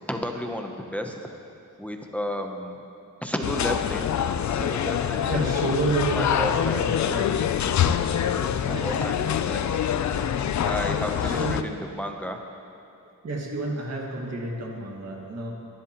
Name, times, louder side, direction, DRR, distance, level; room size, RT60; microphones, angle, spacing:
voice 1, 0.1-1.1 1.8-2.8 3.2-4.1 4.5-5.5 6.1-7.2 8.3-9.8 10.7-12.4, equal, 5° left, 3 dB, 0.7 m, -32 dB
sound 1, 3.4-11.6, left 9 dB, 60° left, 0.5 m, -25 dB
voice 2, 5.1-7.3 8.6-9.0 10.8-11.7 13.2-15.5, right 2 dB, 50° right, -1 dB, 1.9 m, -30 dB
23.0 x 11.0 x 2.9 m, 2.5 s
wide cardioid pair, 175°, 33 cm